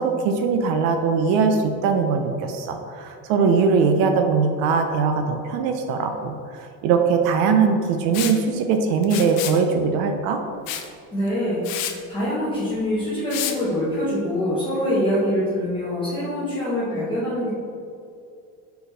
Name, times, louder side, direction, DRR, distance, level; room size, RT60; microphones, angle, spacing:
voice 1, 0.0-10.4, right 5 dB, 75° right, 5 dB, 0.6 m, -21 dB
Liquid, 8.1-8.4 9.0-9.6 10.7-10.9 11.3-11.4 11.6-11.9 13.3-13.6, left 10 dB, 70° left, 0.6 m, -29 dB
voice 2, 11.1-17.5, left 1 dB, 15° left, -10 dB, 1.0 m, -24 dB
6.6 x 4.5 x 3.3 m, 2.5 s
cardioid pair, 175°, 35 cm